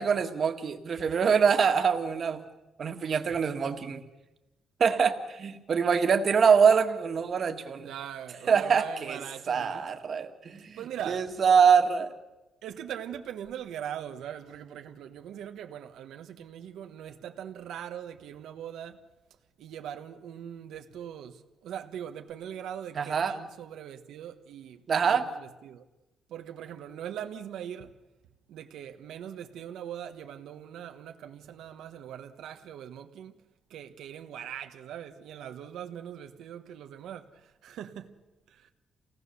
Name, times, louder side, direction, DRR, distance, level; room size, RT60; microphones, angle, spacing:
voice 1, 0.0-2.4 2.8-4.0 4.8-7.9 8.5-9.2 9.5-10.8 11.1-12.1 23.0-23.4 24.9-25.3, right 6 dB, 40° right, 1.8 m, -24 dB
voice 2, 7.8-9.8 10.8-11.3 12.6-19.0 19.6-25.8 26.3-27.9 28.5-33.3 33.7-38.2 38.5-38.7, right 9 dB, 85° right, 1.3 m, -41 dB
28.5 x 18.5 x 7.0 m
cardioid pair, 155°, 0 cm